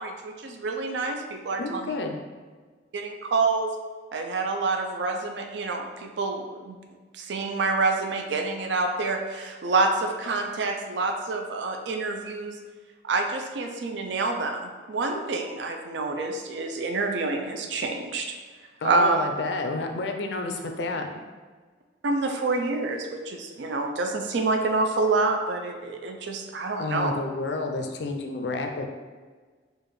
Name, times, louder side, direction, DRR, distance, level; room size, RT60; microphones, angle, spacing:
voice 1, 0.0-1.9 2.9-3.7 4.1-6.8 7.1-12.6 13.0-18.3 18.8-19.2 22.0-27.1, right 3 dB, 75° right, 4 dB, 0.4 m, -27 dB
voice 2, 1.6-2.2 18.8-21.1 26.8-28.9, left 3 dB, 70° left, 4 dB, 0.5 m, -30 dB
4.8 x 2.4 x 3.1 m, 1.4 s
head